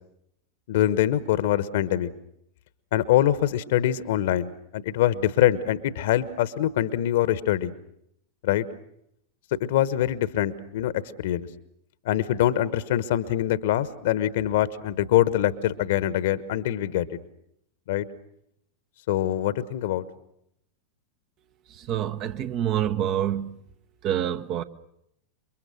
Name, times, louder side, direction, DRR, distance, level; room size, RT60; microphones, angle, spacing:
voice 1, 0.7-2.1 2.9-7.7 8.4-8.7 9.6-10.9 11.2-11.5 12.0-17.1 17.9-18.1 19.1-20.0, left 12 dB, 55° left, 1.2 m, -24 dB
voice 2, 21.7-23.6 24.0-24.6, right 10 dB, 35° right, 1.0 m, -27 dB
28.5 x 23.5 x 6.5 m
figure-of-eight pair, 90°, 0 cm